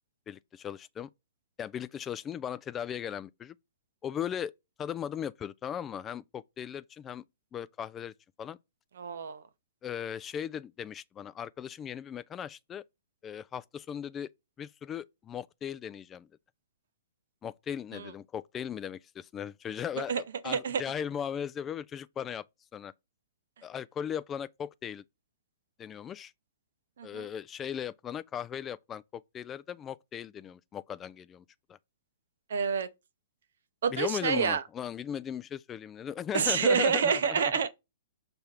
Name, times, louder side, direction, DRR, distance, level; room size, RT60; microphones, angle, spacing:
voice 1, 0.3-1.1 1.6-3.5 4.0-4.5 4.8-7.2 7.5-8.1 8.4-8.6 9.8-12.8 13.2-14.3 14.6-16.3 17.4-22.4 22.7-22.9 23.6-25.0 25.8-26.3 27.0-31.4 31.7-31.8 33.9-37.5, left 9 dB, 20° left, 0.3 m, -37 dB
voice 2, 9.0-9.4 17.9-18.1 20.1-20.8 27.0-27.3 32.5-32.9 33.8-34.6 36.3-37.7, right 6 dB, 60° right, 0.7 m, -28 dB
5.5 x 3.3 x 5.7 m
figure-of-eight pair, 115°, 0 cm